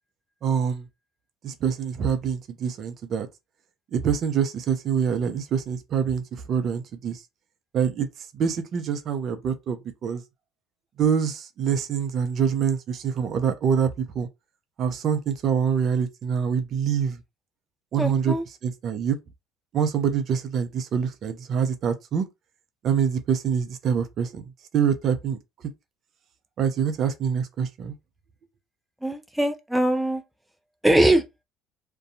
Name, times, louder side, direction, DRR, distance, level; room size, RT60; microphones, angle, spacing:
voice 1, 0.4-0.9 1.4-3.3 3.9-7.2 7.7-8.1 8.3-10.2 11.0-14.3 14.8-17.2 17.9-18.3 18.6-19.2 19.7-22.2 22.8-25.4 26.6-27.9, right 7 dB, 50° right, 0.5 m, -25 dB
voice 2, 18.0-18.4 29.0-30.2 30.8-31.3, right 1 dB, 5° right, 0.5 m, -21 dB
2.6 x 2.2 x 2.6 m
hypercardioid pair, 70°, 0 cm